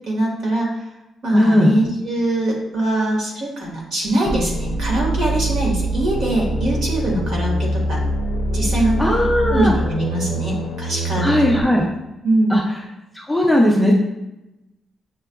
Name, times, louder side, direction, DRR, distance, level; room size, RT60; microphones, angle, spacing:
voice 1, 0.1-0.8 1.2-8.0 8.5-8.9 9.5-11.4 12.2-12.6, right 1 dB, 55° right, -3 dB, 1.5 m, -22 dB
voice 2, 1.3-1.7 9.0-9.7 11.2-11.8 12.5-12.6 13.2-13.9, left 1 dB, ahead, -3 dB, 0.5 m, -16 dB
sound 1, 4.2-11.6, right 1 dB, 70° left, 0.5 m, -23 dB
7.3 x 2.4 x 2.2 m, 0.93 s
cardioid pair, 155°, 0 cm